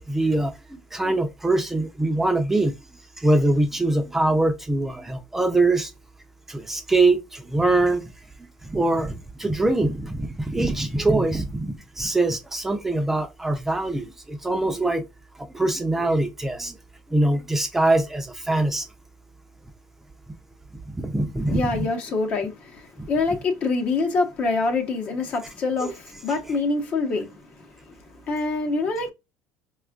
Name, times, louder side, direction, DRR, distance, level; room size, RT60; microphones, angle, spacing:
voice 1, 0.1-2.7 3.2-5.9 6.5-8.0 8.7-15.1 15.5-16.8 17.1-18.9 20.9-21.8 25.8-25.9, right 2 dB, 10° right, 0.5 m, -23 dB
voice 2, 21.5-29.1, left 3 dB, 50° left, 0.8 m, -26 dB
4.2 x 2.4 x 2.3 m
supercardioid pair, 105°, 3 cm